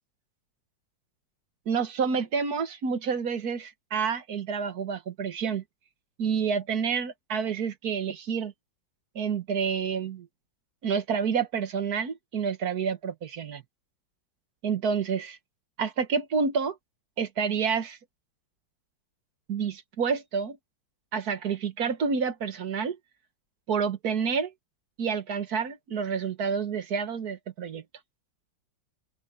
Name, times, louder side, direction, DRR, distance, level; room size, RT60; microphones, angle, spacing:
voice 1, 1.7-5.6 6.2-8.5 9.2-10.3 10.8-13.6 14.6-15.4 15.8-16.8 17.2-18.0 19.5-20.6 21.1-23.0 23.7-24.5 25.0-27.8, right 6 dB, 55° right, 1.8 m, -29 dB
open air
omnidirectional pair, 2.1 m